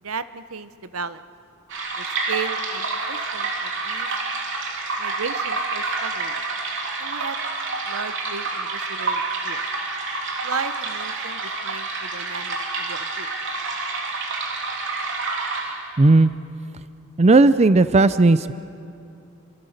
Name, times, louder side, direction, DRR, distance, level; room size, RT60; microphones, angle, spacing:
voice 1, 0.0-1.3 2.0-4.1 5.0-6.4 7.0-7.4 7.8-9.6 10.4-13.3, right 5 dB, 80° right, 12 dB, 1.0 m, -34 dB
sound 1, 1.7-16.0, right 3 dB, 60° right, 3.2 m, -28 dB
voice 2, 16.0-16.3 17.2-18.5, right 3 dB, 30° right, 13 dB, 0.5 m, -15 dB
28.5 x 25.0 x 6.6 m, 2.6 s
head